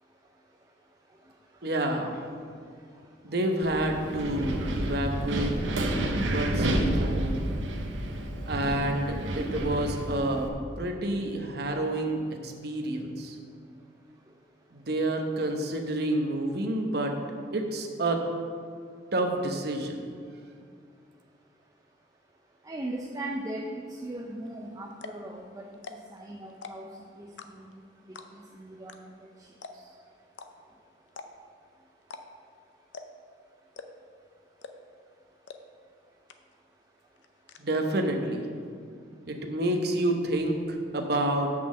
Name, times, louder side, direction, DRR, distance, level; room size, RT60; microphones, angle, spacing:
voice 1, 1.6-2.2 3.2-5.5 6.2-7.2 8.5-10.5 10.8-13.4 14.7-17.2 17.5-18.2 19.1-20.0 37.6-38.4 39.3-41.5, right 1 dB, 55° right, 3 dB, 1.0 m, -29 dB
Wind, 3.6-10.5, right 1 dB, 85° right, 0.9 m, -30 dB
voice 2, 22.6-25.6 26.1-26.9 27.2-27.3 27.6-27.7 28.3-29.1, right 1 dB, 20° right, -1 dB, 0.5 m, -38 dB
sound 1, 24.5-24.6 24.9-25.3 25.7-26.2 26.5-26.9 27.4-27.8 28.1-28.5 28.9-29.0 29.2-29.3 29.6-30.0 30.3-30.5 31.1-31.5 32.0-32.2 32.5-32.6 32.9-33.3 33.7-34.1 34.6-34.9 35.5-35.6 35.9-36.0 36.3-36.7 37.0-37.6, left 4 dB, 75° left, 0.6 m, -43 dB
6.3 x 5.9 x 7.3 m, 2.2 s
head